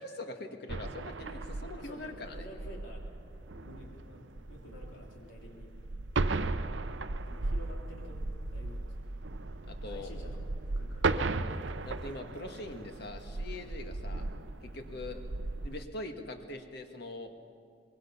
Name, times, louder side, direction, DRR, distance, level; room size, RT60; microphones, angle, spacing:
voice 1, 0.0-2.5 9.7-10.1 11.8-14.3 14.6-15.2 15.6-17.3, left 2 dB, 55° left, 5 dB, 1.7 m, -42 dB
sound 1, 0.7-15.8, right 3 dB, 75° right, 0.7 m, -36 dB
voice 2, 1.7-3.2 3.6-5.7 7.3-9.1 9.8-11.1 13.5-13.7, equal, 85° left, 0 dB, 3.5 m, -51 dB
sound 2, 2.6-8.3, equal, 10° right, 1.4 m, -58 dB
24.0 x 21.5 x 5.8 m, 2.3 s
head